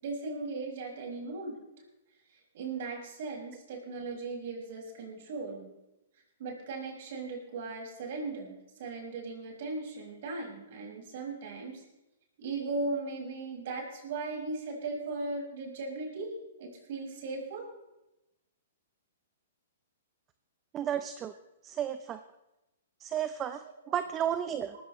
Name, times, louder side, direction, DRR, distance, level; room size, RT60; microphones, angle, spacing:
voice 1, 0.0-1.6 2.5-5.7 6.4-11.8 12.4-17.7 23.6-24.0, right 3 dB, 60° right, 0 dB, 5.9 m, -38 dB
voice 2, 20.7-21.3 21.6-22.2 23.0-24.8, right 9 dB, 25° right, 11 dB, 0.7 m, -33 dB
19.0 x 14.5 x 3.2 m, 0.95 s
hypercardioid pair, 135°, 0 cm